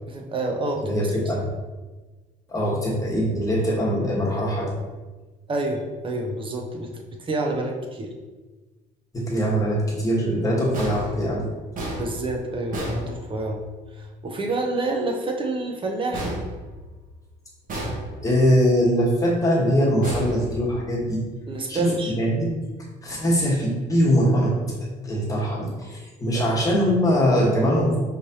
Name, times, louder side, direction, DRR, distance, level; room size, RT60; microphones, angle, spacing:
voice 1, 0.1-0.9 5.5-6.9 7.2-8.1 12.0-13.6 14.0-16.4 21.5-22.1 26.3-26.5, right 2 dB, 30° right, 2 dB, 0.7 m, -28 dB
voice 2, 0.8-1.4 2.5-4.7 9.1-11.5 18.2-21.2 21.7-22.6 23.0-24.6 25.0-28.0, equal, 20° left, -4 dB, 1.4 m, -22 dB
sound 1, 10.7-13.8 16.1-17.2 17.7-18.5 20.0-21.1, right 1 dB, 55° right, 1.2 m, -33 dB
5.0 x 3.3 x 2.8 m, 1.3 s
cardioid pair, 110°, 17 cm